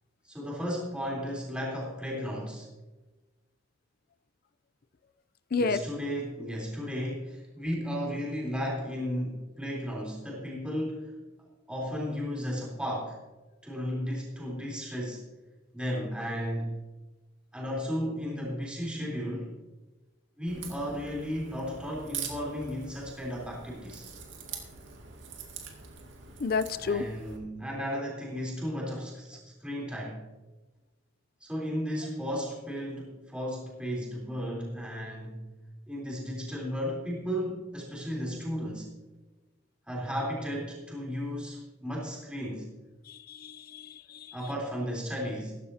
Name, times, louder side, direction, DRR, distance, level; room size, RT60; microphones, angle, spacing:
voice 1, 0.2-2.7 5.6-11.1 11.7-13.2 13.6-15.2 15.7-16.7 17.5-19.5 20.4-24.1 26.7-30.2 31.4-35.4 35.9-38.9 39.9-42.7 44.3-45.6, equal, 5° right, -3 dB, 3.6 m, -34 dB
Crack, 20.5-27.4, right 6 dB, 70° right, 2.3 m, -44 dB
voice 2, 26.4-27.0 43.1-44.3, left 4 dB, 50° left, 12 dB, 0.5 m, -30 dB
15.0 x 14.5 x 2.8 m, 1.1 s
head